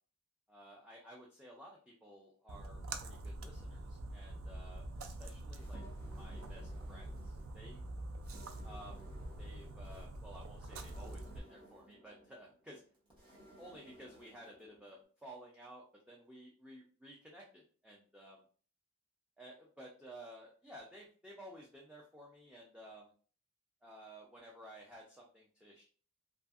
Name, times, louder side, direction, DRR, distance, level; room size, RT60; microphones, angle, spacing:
voice 1, 0.5-5.8 6.2-7.8 8.6-9.0 9.4-12.8 13.5-18.4 19.4-23.1 23.8-25.8, right 1 dB, 5° right, -3 dB, 0.3 m, -54 dB
Splash splatter, 2.5-11.4, right 2 dB, 85° right, 0.4 m, -45 dB
sound 1, 5.5-15.0, right 1 dB, 25° right, 0.8 m, -59 dB
2.6 x 2.5 x 2.3 m, 0.42 s
head